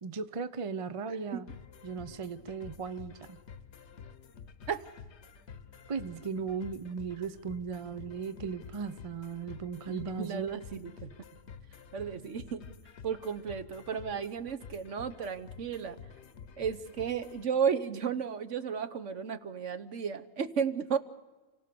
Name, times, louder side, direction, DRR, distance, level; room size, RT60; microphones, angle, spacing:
voice 1, 0.0-1.5 1.8-3.4 5.9-10.6, right 5 dB, 40° right, 12 dB, 0.5 m, -37 dB
sound 1, 1.5-17.5, left 6 dB, 50° left, 1.1 m, -50 dB
voice 2, 9.9-11.1 11.9-12.7 13.0-16.0 16.6-21.0, right 7 dB, 55° right, 12 dB, 1.2 m, -33 dB
29.5 x 17.0 x 6.9 m, 1.2 s
omnidirectional pair, 1.6 m